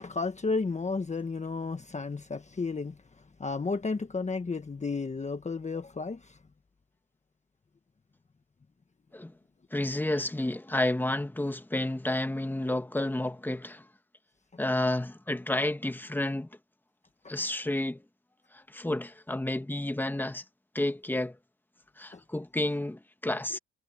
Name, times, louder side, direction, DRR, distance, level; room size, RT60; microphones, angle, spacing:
voice 1, 0.0-6.4 17.2-17.3 22.1-22.2, left 4 dB, 25° left, 1.3 m, -33 dB
voice 2, 9.7-13.8 14.6-16.5 17.3-18.0 18.5-20.4 20.7-21.4 22.0-23.6, left 1 dB, 5° left, 1.6 m, -30 dB
cardioid pair, 90°, 30 cm